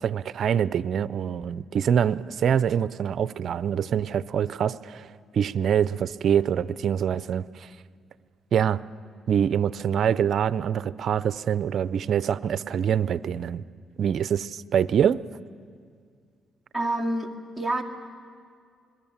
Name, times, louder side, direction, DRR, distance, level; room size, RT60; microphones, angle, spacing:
voice 1, 0.0-5.1 5.3-7.7 8.5-8.8 9.3-13.6 14.0-15.2, right 8 dB, 60° right, 17 dB, 0.5 m, -25 dB
voice 2, 16.7-17.8, right 1 dB, ahead, -2 dB, 2.3 m, -28 dB
26.0 x 21.5 x 7.3 m, 2.1 s
cardioid pair, 90°, 0 cm